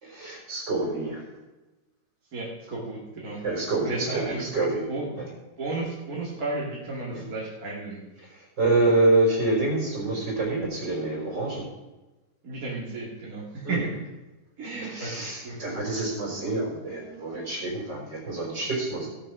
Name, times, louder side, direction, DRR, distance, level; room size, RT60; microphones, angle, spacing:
voice 1, 0.0-1.2 3.4-4.8 5.2-5.3 7.1-7.2 8.3-11.7 13.6-13.8 14.8-19.1, right 2 dB, 70° right, -2 dB, 4.9 m, -26 dB
voice 2, 2.3-3.4 3.8-4.5 4.9-5.2 5.6-8.0 12.4-14.0 14.6-15.8, right 2 dB, 50° right, -5 dB, 2.7 m, -33 dB
17.0 x 6.3 x 6.0 m, 1.1 s
omnidirectional pair, 2.0 m